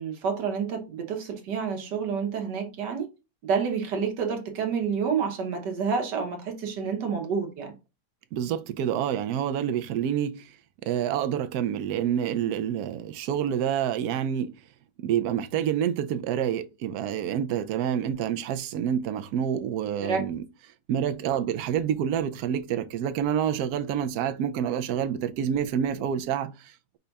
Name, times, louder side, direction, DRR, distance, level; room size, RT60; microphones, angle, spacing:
voice 1, 0.0-3.1 3.4-7.7 20.0-20.2, right 6 dB, 90° right, 1.6 m, -29 dB
voice 2, 8.3-10.5 10.8-14.5 15.0-20.4 20.9-27.0, right 9 dB, 75° right, 1.0 m, -28 dB
5.5 x 2.3 x 4.0 m
omnidirectional pair, 1.8 m